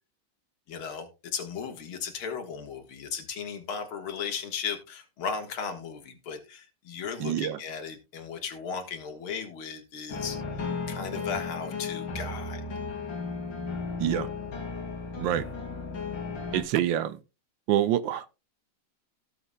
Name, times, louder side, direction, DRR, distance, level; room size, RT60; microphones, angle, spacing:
voice 1, 0.7-12.6, left 6 dB, 90° left, 2.4 m, -36 dB
voice 2, 7.2-7.6 14.0-14.3 15.2-15.5 16.5-17.2 17.7-18.3, right 11 dB, 75° right, 1.3 m, -26 dB
sound 1, 10.1-16.6, left 4 dB, 65° left, 2.9 m, -35 dB
18.0 x 6.9 x 2.3 m
omnidirectional pair, 2.2 m